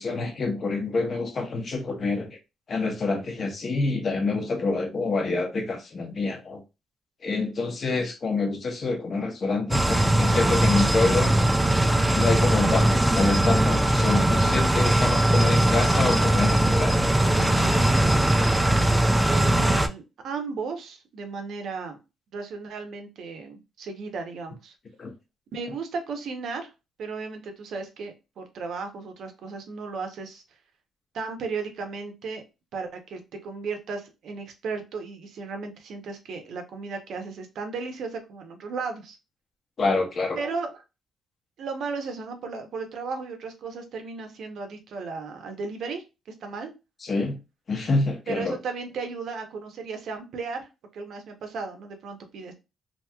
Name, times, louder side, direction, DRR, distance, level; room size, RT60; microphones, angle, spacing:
voice 1, 0.0-2.4 2.7-6.6 7.2-11.3 12.1-17.7 25.0-25.1 39.8-40.4 47.0-47.4 47.7-48.5, left 3 dB, 35° left, 0.7 m, -27 dB
sound 1, 9.7-19.9, right 1 dB, 10° right, 0.3 m, -20 dB
voice 2, 19.2-22.0 22.3-24.7 25.5-26.7 27.0-30.4 31.1-32.4 32.7-39.2 40.3-40.8 41.6-46.0 46.4-46.7 48.3-50.7 50.9-52.5, right 4 dB, 65° right, 0.8 m, -35 dB
2.9 x 2.7 x 2.3 m
cardioid pair, 145°, 0 cm